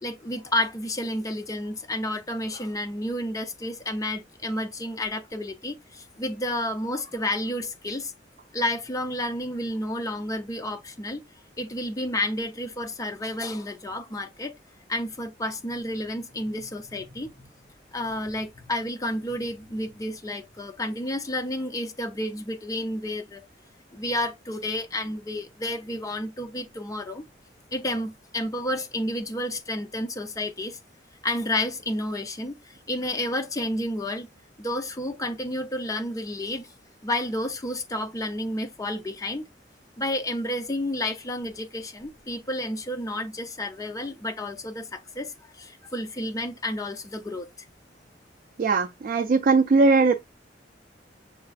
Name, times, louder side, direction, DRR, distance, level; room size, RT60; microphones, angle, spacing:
voice 1, 0.0-8.1 8.5-11.2 11.6-14.6 14.9-17.5 17.9-23.5 23.9-27.2 27.7-30.8 31.2-34.3 34.6-36.7 37.0-39.4 40.0-47.5, left 1 dB, 20° left, 0.5 m, -31 dB
voice 2, 48.6-50.1, right 4 dB, 50° right, 0.4 m, -19 dB
6.6 x 2.4 x 2.4 m
head